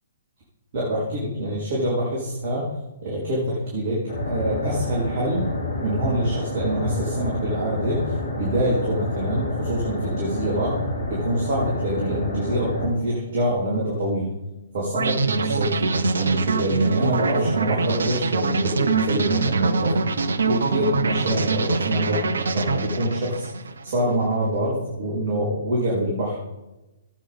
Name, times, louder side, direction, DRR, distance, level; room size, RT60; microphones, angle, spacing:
voice 1, 0.7-2.7 3.0-5.5 5.8-8.1 8.4-10.8 11.1-14.3 14.7-20.0 20.4-23.5 23.8-26.4, right 1 dB, 50° right, -5 dB, 3.7 m, -25 dB
sound 1, 4.1-12.9, left 1 dB, 55° left, 3.6 m, -29 dB
sound 2, 15.0-24.0, right 4 dB, 65° right, 0.7 m, -24 dB
16.0 x 8.6 x 3.6 m, 1.0 s
figure-of-eight pair, 125°, 0 cm